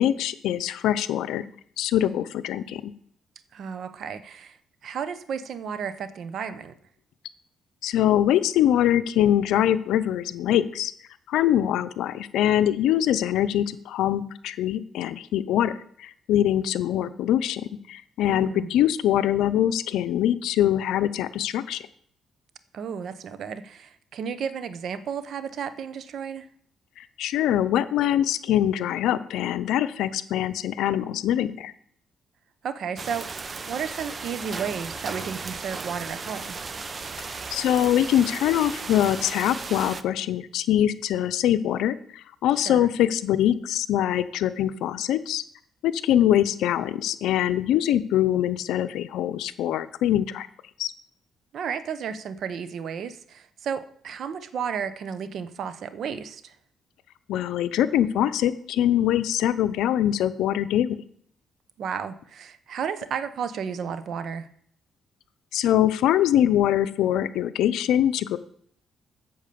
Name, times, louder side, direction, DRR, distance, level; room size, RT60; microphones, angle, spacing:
voice 1, 0.0-1.4 1.8-2.9 7.8-10.9 11.3-15.7 16.0-21.8 27.0-31.7 37.5-45.4 45.8-50.5 50.8-50.9 57.3-61.0 65.5-68.4, left 11 dB, 85° left, 13 dB, 0.6 m, -23 dB
voice 2, 3.5-4.6 4.8-6.7 18.3-18.7 22.7-26.5 32.6-36.6 42.6-42.9 51.5-56.6 61.8-64.5, right 7 dB, 65° right, 13 dB, 0.9 m, -33 dB
sound 1, 33.0-40.0, right 4 dB, 35° right, 0.7 m, -35 dB
8.7 x 7.3 x 6.8 m, 0.63 s
cardioid pair, 90°, 0 cm